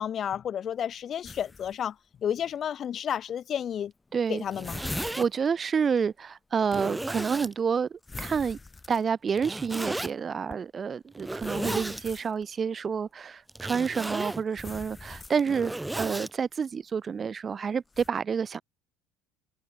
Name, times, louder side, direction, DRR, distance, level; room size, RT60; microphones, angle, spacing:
voice 1, 0.0-1.9 2.2-3.9 4.3-4.8 11.6-11.8, left 9 dB, 45° left, 1.1 m, -31 dB
sound 1, 1.2-1.8 2.4-2.5 3.7-3.8 4.1-5.3 8.0-9.3 10.5-10.6 11.3-12.4 14.5-15.7 17.9-18.1, left 3 dB, 20° left, 4.8 m, -42 dB
voice 2, 4.1-4.4 5.2-8.6 8.9-18.6, right 6 dB, 35° right, 1.0 m, -29 dB
Zipper (clothing), 4.3-5.3 6.0-6.1 6.7-7.5 9.4-10.1 11.1-12.0 13.5-14.4 15.2-16.3, right 1 dB, 10° right, 0.9 m, -34 dB
figure-of-eight pair, 60°, 0 cm